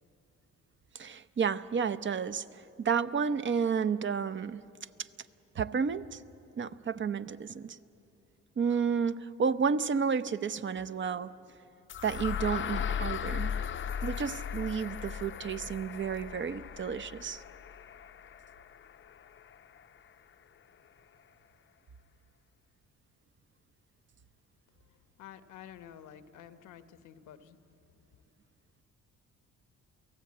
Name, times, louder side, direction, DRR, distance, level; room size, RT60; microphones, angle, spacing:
voice 1, 0.9-4.6 5.6-6.2 6.6-7.8 8.6-11.3 12.0-13.6 14.0-17.4, right 6 dB, 40° right, 13 dB, 0.7 m, -31 dB
sound 1, 11.9-19.8, left 8 dB, 40° left, 0.6 m, -37 dB
voice 2, 24.9-27.6, left 10 dB, 85° left, 11 dB, 1.0 m, -51 dB
28.5 x 18.0 x 8.5 m, 2.7 s
cardioid pair, 90°, 30 cm